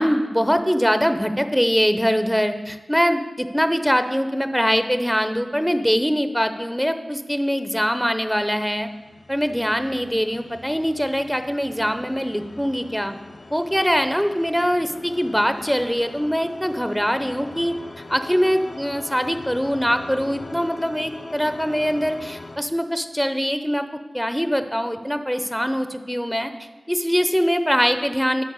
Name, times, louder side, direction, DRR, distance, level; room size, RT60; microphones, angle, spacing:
voice 1, 0.0-8.9 9.3-13.1 13.5-17.7 18.1-23.8 24.1-26.5 26.9-28.4, equal, ahead, 9 dB, 0.6 m, -22 dB
sound 1, 8.2-22.6, left 2 dB, 65° left, 0.6 m, -41 dB
11.0 x 4.5 x 7.8 m, 1.3 s
cardioid pair, 45°, 0 cm